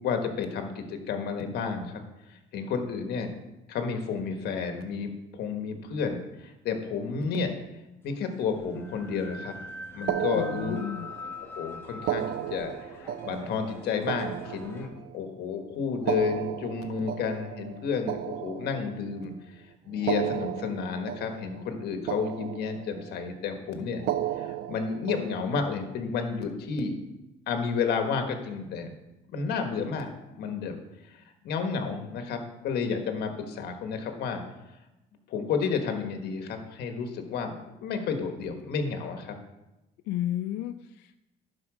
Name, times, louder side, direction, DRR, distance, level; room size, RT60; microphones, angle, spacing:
voice 1, 0.0-2.0 2.3-3.3 3.7-7.5 8.0-9.5 9.9-10.8 11.4-12.7 13.0-19.3 19.9-24.0 24.4-27.0 27.5-29.0 29.3-30.8 31.1-34.4 35.3-37.5 37.8-39.4, left 5 dB, 75° left, 5 dB, 1.4 m, -31 dB
sound 1, 8.3-14.9, left 2 dB, 15° left, 1.7 m, -44 dB
sound 2, 10.1-11.3 12.0-15.3 15.9-19.2 19.9-21.8 22.1-23.1 23.9-25.8, right 11 dB, 60° right, 0.5 m, -34 dB
voice 2, 10.3-11.1 40.1-41.2, left 12 dB, 90° left, 9 dB, 0.4 m, -33 dB
11.5 x 4.7 x 4.9 m, 0.99 s
cardioid pair, 110°, 17 cm